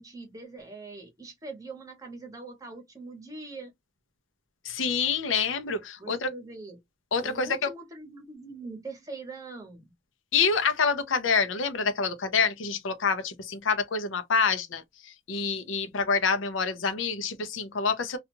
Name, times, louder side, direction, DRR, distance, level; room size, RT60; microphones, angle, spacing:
voice 1, 0.0-3.7 6.0-6.8 7.2-9.9, right 3 dB, 20° right, 0.9 m, -42 dB
voice 2, 4.6-6.3 7.1-7.7 10.3-18.2, left 5 dB, 80° left, 0.6 m, -27 dB
2.4 x 2.3 x 2.9 m
head